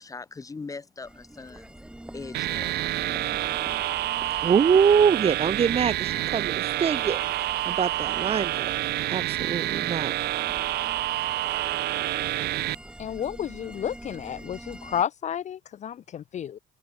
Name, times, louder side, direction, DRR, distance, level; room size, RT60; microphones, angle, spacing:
voice 1, 0.0-1.6 2.1-2.7, left 4 dB, 20° left, 0.9 m, -40 dB
sound 1, 1.0-15.0, right 1 dB, 5° right, 2.0 m, -44 dB
sound 2, 2.3-12.8, right 15 dB, 75° right, 2.6 m, -28 dB
voice 2, 4.4-7.2 7.6-8.7 9.1-10.1, right 7 dB, 35° right, 1.4 m, -23 dB
voice 3, 13.0-16.6, left 9 dB, 45° left, 0.7 m, -31 dB
cardioid pair, 110°, 17 cm